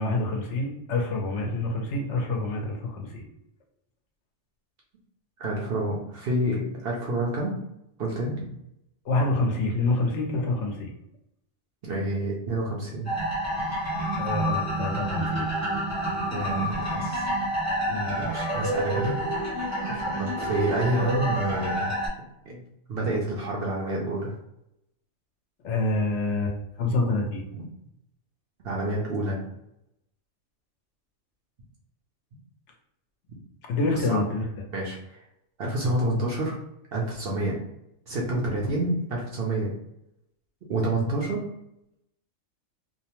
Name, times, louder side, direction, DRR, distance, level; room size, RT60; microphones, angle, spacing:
voice 1, 0.0-3.2 9.0-10.9 14.2-15.5 17.9-18.2 19.9-20.2 25.6-27.4 33.7-34.4, left 2 dB, 70° left, 1 dB, 0.8 m, -27 dB
voice 2, 5.4-7.6 8.0-8.4 11.8-13.1 16.3-17.3 18.3-19.2 20.2-21.9 22.5-22.6 22.9-24.3 28.6-29.4 33.9-34.2 34.7-35.2 35.6-36.6 36.9-37.6 38.1-39.7 40.7-41.5, right 1 dB, 60° right, -3 dB, 0.7 m, -28 dB
sound 1, 13.0-22.1, right 1 dB, 20° right, 0.5 m, -28 dB
2.7 x 2.0 x 2.9 m, 0.82 s
omnidirectional pair, 1.4 m